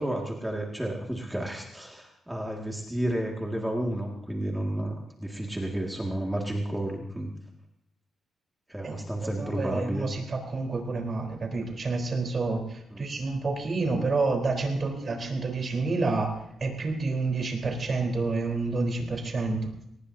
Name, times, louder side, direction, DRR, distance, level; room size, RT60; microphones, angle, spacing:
voice 1, 0.0-7.3 8.7-10.1 12.9-13.0, right 1 dB, 5° right, -1 dB, 2.1 m, -31 dB
voice 2, 9.4-19.7, right 3 dB, 35° right, 3 dB, 3.9 m, -29 dB
23.5 x 19.0 x 2.8 m, 0.80 s
cardioid pair, 135°, 0 cm